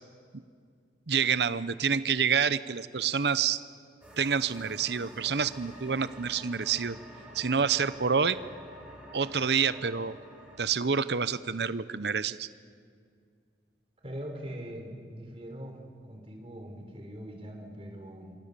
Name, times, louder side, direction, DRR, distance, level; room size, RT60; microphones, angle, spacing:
voice 1, 1.1-3.6 4.2-7.0 7.3-8.4 9.1-10.1 10.6-12.5, right 6 dB, 70° right, 15 dB, 0.8 m, -27 dB
sound 1, 4.0-10.6, right 1 dB, 5° right, 4.9 m, -48 dB
voice 2, 14.0-15.8 16.1-18.4, equal, 35° right, 2 dB, 4.2 m, -42 dB
27.0 x 24.5 x 6.9 m, 2.2 s
head